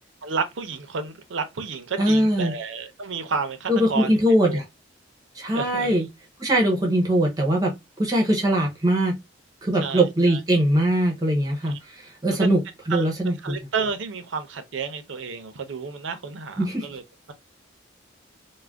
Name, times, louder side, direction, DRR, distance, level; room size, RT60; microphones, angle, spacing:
voice 1, 0.2-4.1 4.5-4.6 5.5-6.1 9.8-10.4 11.6-11.7 12.3-12.6 12.9-17.0, right 5 dB, 75° right, 0.5 m, -31 dB
voice 2, 2.0-2.5 3.7-4.6 5.3-6.1 6.4-7.7 8.0-9.2 9.6-12.6 12.9-13.6 16.6-16.9, right 1 dB, 20° right, 0.6 m, -21 dB
2.4 x 2.1 x 3.3 m
head